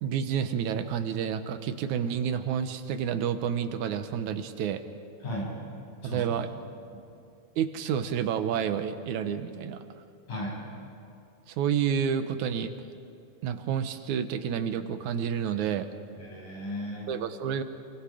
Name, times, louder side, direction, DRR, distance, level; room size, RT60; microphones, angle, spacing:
voice 1, 0.0-4.8 6.0-6.5 7.6-9.8 11.5-12.7 13.4-15.9 17.1-17.6, right 8 dB, 75° right, 9 dB, 2.3 m, -29 dB
voice 2, 6.0-6.5 10.3-10.6 16.2-17.1, equal, 85° left, -4 dB, 8.4 m, -35 dB
28.5 x 23.5 x 5.0 m, 2.6 s
omnidirectional pair, 3.5 m